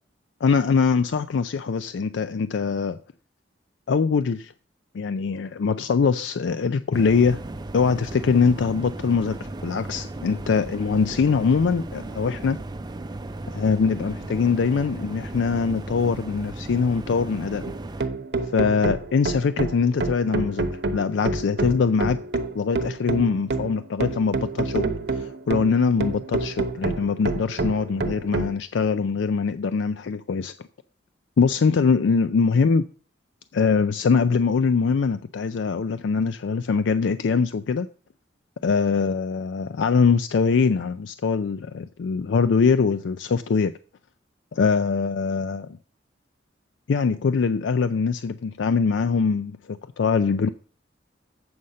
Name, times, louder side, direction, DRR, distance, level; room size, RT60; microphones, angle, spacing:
voice 1, 0.4-3.0 3.9-4.5 4.9-7.4 7.7-12.6 13.5-17.7 18.5-22.2 22.6-30.5 31.4-32.8 33.5-37.9 38.6-43.7 44.5-45.8 46.9-50.5, left 5 dB, 85° left, 0.4 m, -23 dB
sound 1, 6.9-18.0, right 2 dB, 25° right, 0.5 m, -36 dB
sound 2, 17.6-28.5, right 3 dB, 65° right, 0.9 m, -28 dB
7.9 x 6.4 x 5.6 m
head